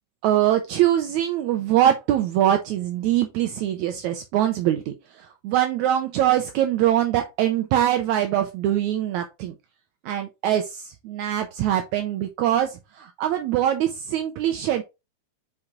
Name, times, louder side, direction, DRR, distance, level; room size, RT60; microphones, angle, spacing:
voice 1, 0.2-9.5 10.0-14.8, right 11 dB, 75° right, 1.9 m, -23 dB
6.0 x 4.4 x 3.7 m
omnidirectional pair, 3.6 m